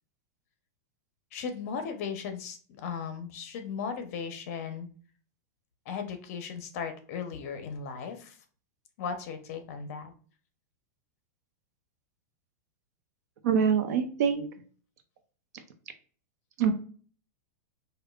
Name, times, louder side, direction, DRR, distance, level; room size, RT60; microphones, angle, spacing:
voice 1, 1.3-4.9 5.9-8.4 9.0-10.1, left 6 dB, 55° left, 7 dB, 0.7 m, -37 dB
voice 2, 13.4-14.5 16.6-16.7, right 7 dB, 65° right, 7 dB, 0.7 m, -24 dB
5.1 x 2.3 x 2.4 m, 0.42 s
supercardioid pair, 150°, 9 cm